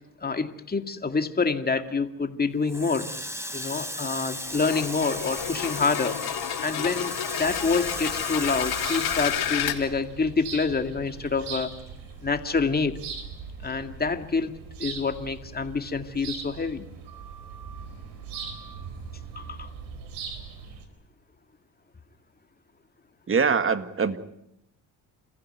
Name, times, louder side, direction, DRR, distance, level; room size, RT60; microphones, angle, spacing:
voice 1, 0.2-3.1 3.5-6.2 6.6-11.7 12.2-12.9 13.6-16.9 19.4-19.7, left 4 dB, 25° left, 7 dB, 2.2 m, -27 dB
Water tap faucet, 2.7-10.5 10.8-12.2, equal, 5° right, 4.4 m, -36 dB
sound 1, 4.5-9.8, left 10 dB, 70° left, 3.6 m, -31 dB
sound 2, 7.4-20.9, right 6 dB, 90° right, 4.0 m, -40 dB
voice 2, 23.3-24.2, right 5 dB, 30° right, 10 dB, 1.8 m, -23 dB
29.0 x 15.0 x 9.4 m, 0.84 s
supercardioid pair, 85°, 39 cm